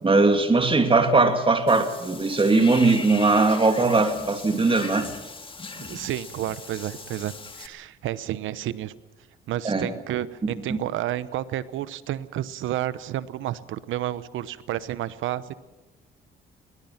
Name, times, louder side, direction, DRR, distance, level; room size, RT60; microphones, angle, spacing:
voice 1, 0.0-5.1 9.6-9.9 10.4-10.8, right 3 dB, 25° right, 6 dB, 2.6 m, -20 dB
Water / Bathtub (filling or washing), 1.7-7.7, left 3 dB, 25° left, 2.2 m, -38 dB
voice 2, 5.8-8.9 9.5-15.5, right 13 dB, 85° right, 16 dB, 1.0 m, -31 dB
22.0 x 20.5 x 5.9 m, 1.1 s
cardioid pair, 90°, 20 cm